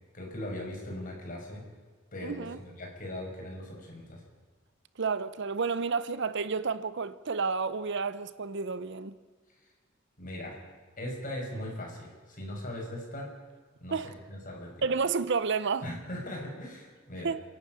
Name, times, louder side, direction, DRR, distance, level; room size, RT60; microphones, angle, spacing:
voice 1, 0.1-1.6 2.1-4.2 10.2-10.6 11.0-13.3 13.8-14.9 15.8-17.3, left 1 dB, 40° left, 5.9 m, -39 dB
voice 2, 2.2-2.6 5.0-9.2 13.9-14.1 14.8-15.9 17.2-17.4, right 5 dB, 60° right, 0.8 m, -30 dB
28.5 x 11.5 x 9.0 m
head